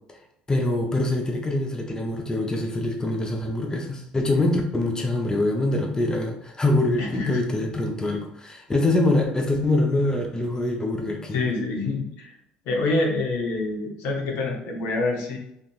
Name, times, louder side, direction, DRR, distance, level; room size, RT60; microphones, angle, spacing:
voice 1, 0.5-11.5, left 2 dB, 15° left, 2 dB, 0.6 m, -24 dB
voice 2, 7.0-7.4 11.3-12.3 12.7-15.4, left 3 dB, 65° left, 0 dB, 0.7 m, -26 dB
3.6 x 2.5 x 2.3 m, 0.77 s
hypercardioid pair, 60°, 4 cm